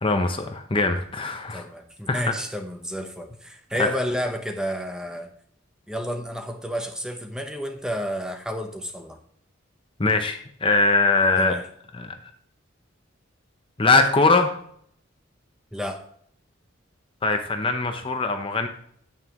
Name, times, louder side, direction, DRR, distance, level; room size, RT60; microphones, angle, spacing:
voice 1, 0.0-1.6 2.1-2.2 3.8-3.9 10.0-11.5 11.9-12.2 13.8-14.5 17.2-18.7, left 3 dB, 25° left, 6 dB, 0.7 m, -21 dB
voice 2, 1.5-5.3 5.9-9.2 11.4-11.7 15.7-16.0, equal, 5° right, 5 dB, 0.8 m, -31 dB
9.5 x 9.0 x 3.0 m, 0.64 s
head